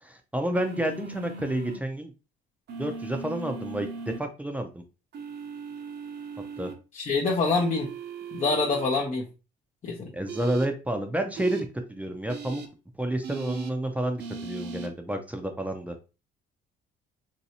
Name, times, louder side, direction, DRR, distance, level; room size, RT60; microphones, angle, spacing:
voice 1, 0.0-2.1 2.8-4.8 6.6-6.7 10.1-12.6 13.0-15.9, right 1 dB, 5° right, 5 dB, 0.6 m, -30 dB
sound 1, 0.5-1.8 2.7-4.2 5.1-6.7 7.5-8.9 10.3-10.7 11.3-11.6 12.3-12.7 13.2-13.7 14.2-14.9, right 5 dB, 60° right, 0.8 m, -38 dB
voice 2, 6.9-7.9 8.3-9.3 9.8-10.1, left 3 dB, 40° left, -3 dB, 0.8 m, -25 dB
3.1 x 2.7 x 2.8 m, 0.31 s
supercardioid pair, 75°, 19 cm